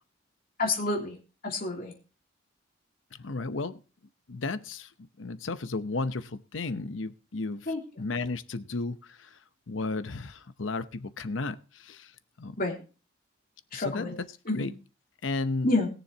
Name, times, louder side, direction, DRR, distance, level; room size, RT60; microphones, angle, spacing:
voice 1, 0.6-1.1 1.4-1.9 7.7-7.8 12.6-12.7 13.7-14.1 14.4-14.7 15.6-15.9, left 2 dB, 50° left, -1 dB, 3.1 m, -28 dB
voice 2, 3.2-3.8 4.3-4.9 5.2-7.7 8.0-9.0 9.7-11.6 11.8-12.1 12.4-12.6 13.7-14.2 14.5-14.7 15.2-15.7, left 3 dB, 90° left, 12 dB, 0.8 m, -33 dB
21.0 x 7.1 x 2.8 m, 0.34 s
head